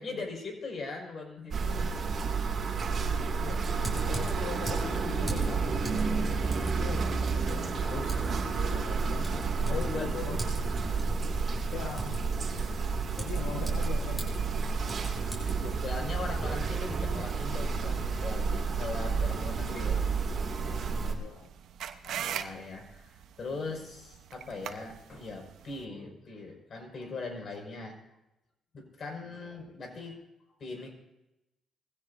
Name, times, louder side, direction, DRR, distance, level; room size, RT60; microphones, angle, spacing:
voice 1, 0.0-2.0 8.3-8.5 9.7-10.1 14.9-20.1 22.0-28.1 28.7-30.2 30.6-30.9, left 3 dB, 50° left, 2 dB, 5.9 m, -40 dB
sound 1, 1.5-21.1, right 4 dB, 50° right, 2.6 m, -30 dB
voice 2, 3.4-6.1 6.7-9.3 9.7-10.8 11.7-12.2 13.2-14.4 21.0-21.5 23.5-23.7 29.2-29.8, left 7 dB, 90° left, 2 dB, 1.5 m, -42 dB
Typing, 3.6-16.0, right 1 dB, 5° left, 6.9 m, -43 dB
sound 2, 20.7-25.8, right 9 dB, 75° right, 1.0 m, -41 dB
21.0 x 16.5 x 2.8 m, 0.92 s
cardioid pair, 90°, 0 cm